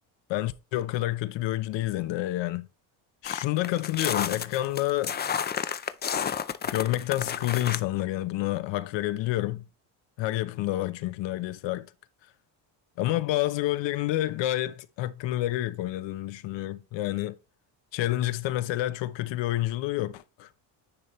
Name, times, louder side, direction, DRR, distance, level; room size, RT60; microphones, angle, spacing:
voice 1, 0.3-2.7 3.2-5.2 6.7-9.6 10.2-11.9 13.0-17.3 17.9-20.5, left 15 dB, 65° left, 0.8 m, -29 dB
sound 1, 3.2-7.8, left 7 dB, 20° left, 0.4 m, -31 dB
10.0 x 4.2 x 3.1 m
cardioid pair, 120°, 47 cm